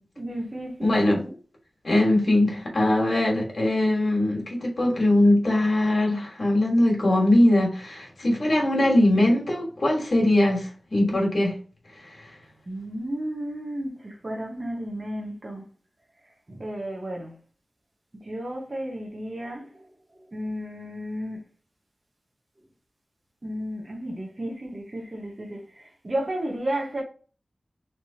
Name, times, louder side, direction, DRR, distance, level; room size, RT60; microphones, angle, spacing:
voice 1, 0.2-1.4 12.7-15.6 16.5-17.4 18.1-19.8 20.3-21.4 23.4-27.0, right 1 dB, 40° right, 0.9 m, -33 dB
voice 2, 0.8-1.2 1.8-11.5, left 1 dB, 55° left, 1.4 m, -21 dB
3.3 x 3.0 x 2.7 m
wide cardioid pair, 90°, 0 cm